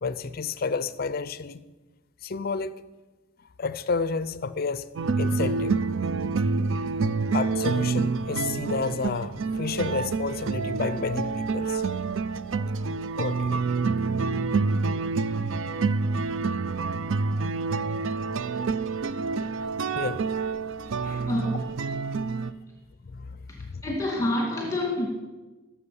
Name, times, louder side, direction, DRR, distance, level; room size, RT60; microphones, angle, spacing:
voice 1, 0.0-1.6 2.2-2.8 3.6-4.9 5.2-5.9 7.3-11.8 13.2-13.6 19.9-20.3 21.0-21.3 23.1-23.8, left 4 dB, 45° left, 0.5 m, -31 dB
sound 1, 5.0-22.5, right 4 dB, 70° right, 0.5 m, -27 dB
voice 2, 21.3-21.7 23.5-25.1, left 1 dB, 15° left, 2.2 m, -28 dB
15.5 x 7.1 x 7.0 m
head